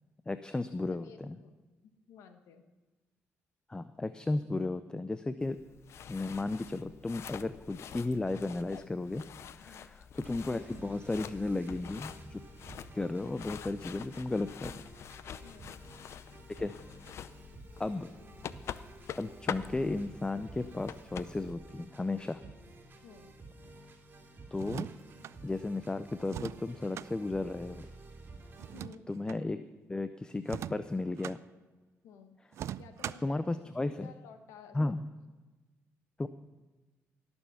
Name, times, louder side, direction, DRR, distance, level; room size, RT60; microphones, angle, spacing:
voice 1, 0.3-1.4 3.7-5.6 6.1-12.4 12.9-14.8 16.6-16.7 17.8-18.1 19.1-22.4 24.5-24.9 25.4-27.8 29.1-29.6 29.9-31.4 33.2-34.1 34.7-35.0 36.2-36.3, left 2 dB, 15° left, 11 dB, 0.5 m, -34 dB
voice 2, 0.8-1.5 1.8-2.6 9.6-10.0 15.4-15.8 23.0-23.3 28.7-29.0 32.0-32.4 32.8-34.8, left 6 dB, 90° left, 8 dB, 1.2 m, -54 dB
sound 1, 5.4-21.5, left 8 dB, 65° left, 0.5 m, -46 dB
sound 2, 10.2-28.8, right 2 dB, 40° right, 2.7 m, -52 dB
sound 3, 24.5-25.4 26.3-27.1 28.6-29.4 30.4-31.4 32.5-33.4, right 11 dB, 70° right, 0.3 m, -41 dB
18.0 x 7.1 x 5.8 m, 1.2 s
cardioid pair, 85°, 5 cm